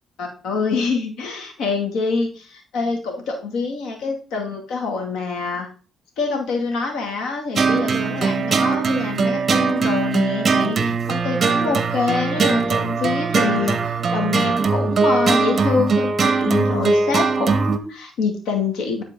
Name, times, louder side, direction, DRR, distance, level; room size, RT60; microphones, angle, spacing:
voice 1, 0.2-5.7 6.2-19.0, left 4 dB, 85° left, 2 dB, 2.3 m, -25 dB
sound 1, 7.6-17.8, right 4 dB, 40° right, 0.9 m, -20 dB
11.0 x 4.4 x 3.7 m, 0.37 s
cardioid pair, 90°, 0 cm